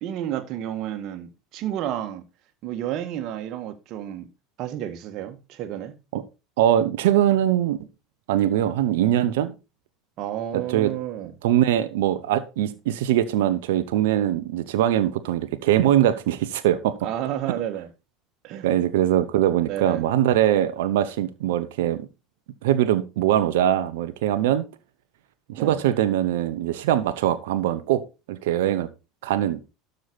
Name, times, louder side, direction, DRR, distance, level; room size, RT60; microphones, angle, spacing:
voice 1, 0.0-2.2 2.6-4.3 4.6-5.9 10.2-11.3 17.0-17.9 18.4-18.7 19.6-20.0 25.5-25.8, right 11 dB, 50° right, 1.8 m, -31 dB
voice 2, 6.6-7.8 8.3-9.5 10.5-10.9 11.4-16.9 18.6-22.1 22.6-24.6 25.5-28.0 28.3-28.9 29.2-29.6, right 12 dB, 65° right, 1.0 m, -22 dB
12.5 x 6.8 x 4.1 m
figure-of-eight pair, 75°, 0 cm